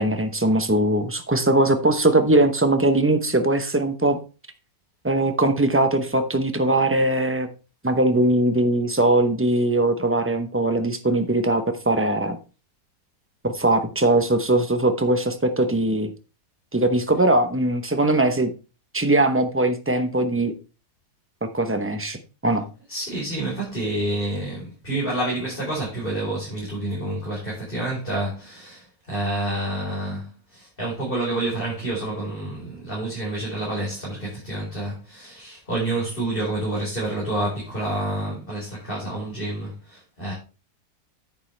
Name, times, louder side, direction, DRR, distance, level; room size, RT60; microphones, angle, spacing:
voice 1, 0.0-4.2 5.0-7.5 7.8-12.4 13.4-16.1 16.7-18.5 18.9-20.5 21.4-22.6, right 2 dB, 15° right, 7 dB, 0.6 m, -21 dB
voice 2, 22.9-30.2 30.5-40.3, right 1 dB, 30° left, -6 dB, 4.8 m, -28 dB
10.0 x 8.2 x 3.3 m, 0.33 s
omnidirectional pair, 1.7 m